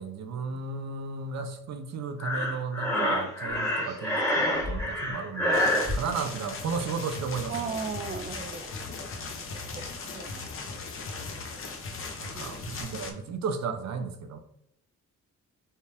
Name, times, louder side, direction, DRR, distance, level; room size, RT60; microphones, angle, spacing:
voice 1, 0.0-5.6 5.9-7.7 12.2-14.4, right 5 dB, 60° right, 8 dB, 0.7 m, -34 dB
Breathing, 2.2-5.9, left 1 dB, 10° left, 1.2 m, -27 dB
sound 1, 5.5-13.1, left 4 dB, 45° left, 0.7 m, -39 dB
sound 2, 6.6-12.8, left 3 dB, 75° left, 1.3 m, -44 dB
voice 2, 7.5-8.7 9.7-10.4 12.3-12.5 12.9-13.1, right 6 dB, 30° right, 7 dB, 0.4 m, -37 dB
5.5 x 2.3 x 3.4 m, 0.77 s
cardioid pair, 105°, 31 cm